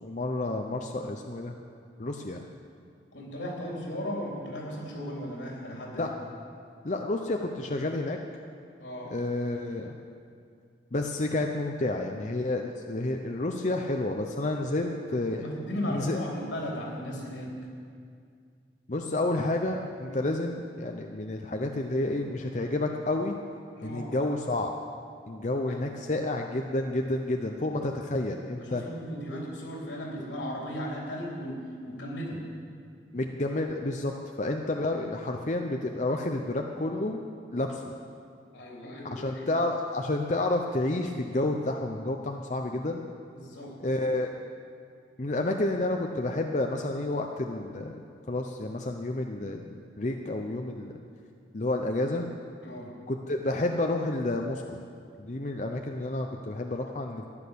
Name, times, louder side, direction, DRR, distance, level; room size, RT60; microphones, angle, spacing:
voice 1, 0.0-1.5 2.0-2.4 5.9-6.1 6.8-8.2 9.1-9.9 10.9-15.5 15.9-16.2 18.9-23.4 23.8-24.7 25.3-28.8 33.1-34.1 34.4-37.2 37.5-37.8 39.1-43.0 43.8-44.3 45.2-50.9 51.5-52.3 53.1-54.8 55.2-57.2, left 2 dB, 40° left, 3 dB, 0.7 m, -30 dB
voice 2, 3.1-6.2 8.8-9.1 14.8-14.9 15.4-17.5 20.0-20.3 23.7-24.1 25.7-25.9 28.6-32.4 38.5-39.5 43.3-43.7 52.6-52.9, equal, 85° left, -2 dB, 3.9 m, -36 dB
14.5 x 10.5 x 6.9 m, 2.3 s
head